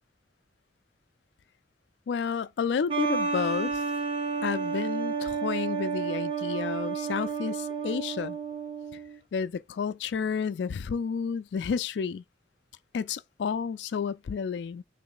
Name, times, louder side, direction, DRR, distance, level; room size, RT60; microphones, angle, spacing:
voice 1, 2.1-3.8 4.4-8.4 9.3-12.2 12.9-14.8, left 6 dB, 70° left, 0.3 m, -31 dB
sound 1, 2.9-9.2, right 5 dB, 30° right, 0.7 m, -31 dB
3.2 x 3.1 x 4.7 m
head